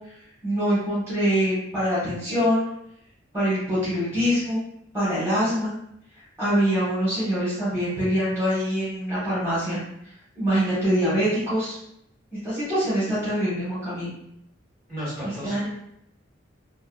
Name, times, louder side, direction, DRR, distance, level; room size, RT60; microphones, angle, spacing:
voice 1, 0.4-2.6 3.3-4.6 4.9-5.7 6.4-9.8 10.4-11.8 12.4-14.1 15.2-15.7, equal, 15° right, -11 dB, 1.0 m, -24 dB
voice 2, 14.9-15.7, equal, 45° right, -9 dB, 1.4 m, -33 dB
2.7 x 2.3 x 2.3 m, 0.75 s
head